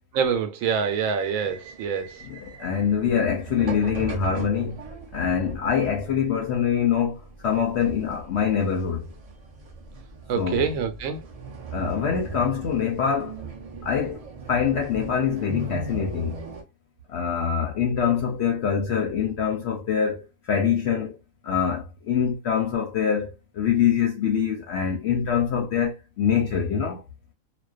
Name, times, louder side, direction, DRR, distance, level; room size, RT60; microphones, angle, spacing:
voice 1, 0.1-2.2 10.3-11.2, right 6 dB, 85° right, 1.0 m, -26 dB
sound 1, 0.6-16.6, right 3 dB, 65° right, 0.3 m, -39 dB
voice 2, 2.2-4.8 5.1-9.1 10.4-10.7 11.7-13.4 13.8-14.2 14.5-16.4 17.1-21.2 21.4-27.0, left 7 dB, 65° left, 0.8 m, -24 dB
2.4 x 2.2 x 2.3 m
omnidirectional pair, 1.4 m